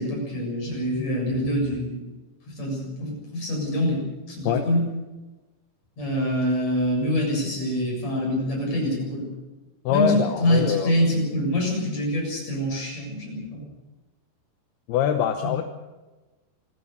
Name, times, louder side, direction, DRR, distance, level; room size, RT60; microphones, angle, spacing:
voice 1, 0.0-2.0 2.5-4.0 4.3-4.8 6.0-9.3 9.9-13.7 15.4-15.6, equal, 35° left, -1 dB, 8.5 m, -25 dB
voice 2, 9.9-10.9 14.9-15.6, left 9 dB, 75° left, 6 dB, 2.7 m, -23 dB
26.0 x 15.5 x 6.9 m, 1.2 s
omnidirectional pair, 5.1 m